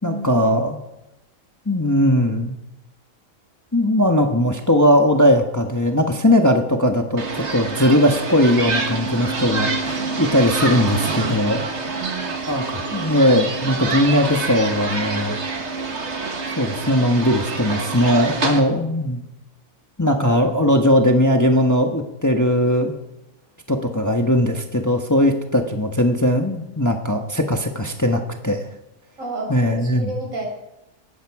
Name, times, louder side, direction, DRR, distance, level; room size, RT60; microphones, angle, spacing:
voice 1, 0.0-0.8 1.7-2.6 3.7-11.6 12.5-15.4 16.6-19.2 20.0-23.0 23.7-28.7 29.5-30.1, left 1 dB, 15° left, 3 dB, 1.2 m, -19 dB
sound 1, 7.2-18.6, right 3 dB, 55° right, 1.9 m, -26 dB
voice 2, 12.0-12.4 29.2-30.5, right 2 dB, 75° right, -1 dB, 6.0 m, -31 dB
17.5 x 13.5 x 4.8 m, 0.92 s
omnidirectional pair, 1.4 m